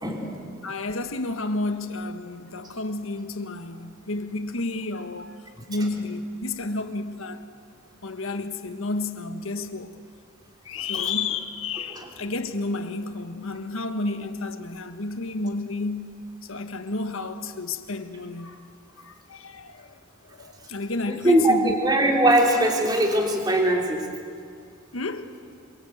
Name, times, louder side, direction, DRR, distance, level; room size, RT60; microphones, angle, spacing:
voice 1, 0.0-0.4 21.1-24.1, right 1 dB, 20° right, 3.2 m, -21 dB
voice 2, 0.6-5.4 5.7-7.5 8.0-9.9 10.6-16.1 16.4-18.6 19.0-20.0 20.3-22.1 24.6-25.3, left 3 dB, 85° left, 1.5 m, -31 dB
27.5 x 23.0 x 7.9 m
head